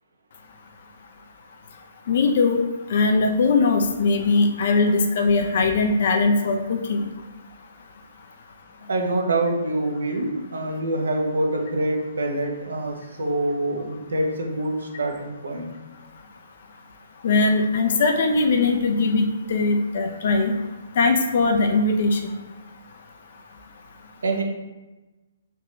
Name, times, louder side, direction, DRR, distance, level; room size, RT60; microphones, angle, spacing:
voice 1, 2.1-2.6 2.9-7.0 17.2-20.6 21.0-22.4, left 3 dB, 60° left, 4 dB, 0.4 m, -20 dB
voice 2, 8.9-15.7 24.2-24.4, right 2 dB, 75° right, 1 dB, 0.7 m, -25 dB
3.4 x 2.8 x 3.1 m, 1.1 s
hypercardioid pair, 130°, 0 cm